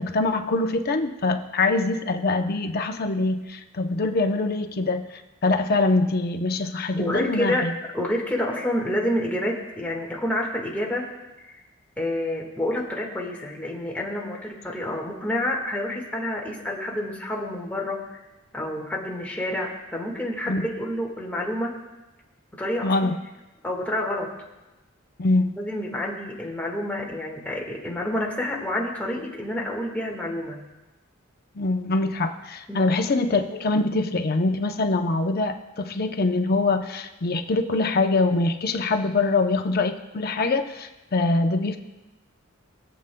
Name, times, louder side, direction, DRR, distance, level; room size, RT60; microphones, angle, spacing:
voice 1, 0.0-5.0 5.4-7.7 20.5-20.6 22.8-23.2 25.2-25.6 31.5-41.8, left 3 dB, 50° left, 5 dB, 0.7 m, -24 dB
voice 2, 7.0-11.1 12.0-18.0 18.5-21.8 22.6-23.0 23.6-24.3 25.6-30.6 32.7-32.8, left 1 dB, 10° left, -2 dB, 1.6 m, -28 dB
23.0 x 7.8 x 2.3 m, 1.1 s
head